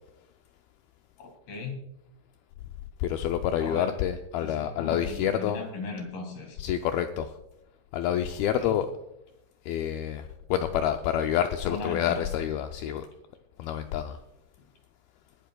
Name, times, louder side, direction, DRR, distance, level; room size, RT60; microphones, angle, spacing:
voice 1, 1.2-1.8 3.6-3.9 4.4-6.6 8.5-8.7 11.7-12.3 14.6-14.7, left 4 dB, 65° left, 3 dB, 3.6 m, -37 dB
voice 2, 3.0-5.6 6.6-7.3 7.9-8.9 9.7-13.1 13.6-14.2, left 10 dB, 85° left, 6 dB, 2.2 m, -28 dB
21.5 x 10.5 x 2.3 m, 0.87 s
omnidirectional pair, 4.9 m